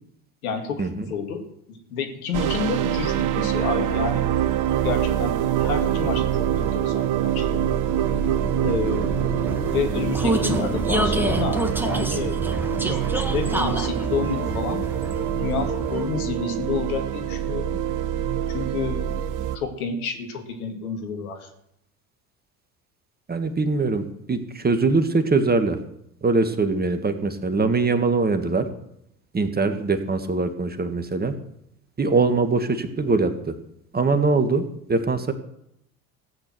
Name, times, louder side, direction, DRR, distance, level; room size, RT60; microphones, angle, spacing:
voice 1, 0.4-4.3 4.8-7.6 8.6-9.2 9.7-14.8 15.3-17.8 18.5-19.0 19.5-21.5, left 5 dB, 75° left, 4 dB, 2.3 m, -29 dB
sound 1, 2.3-19.6, right 10 dB, 45° right, 1.1 m, -25 dB
Vehicle, 5.6-16.4, right 1 dB, 5° right, 1.9 m, -29 dB
voice 2, 23.3-25.8 26.2-28.6 29.3-31.3 32.0-33.5 33.9-35.3, right 3 dB, 20° right, 8 dB, 1.7 m, -22 dB
16.0 x 8.9 x 6.1 m, 0.78 s
figure-of-eight pair, 65°, 44 cm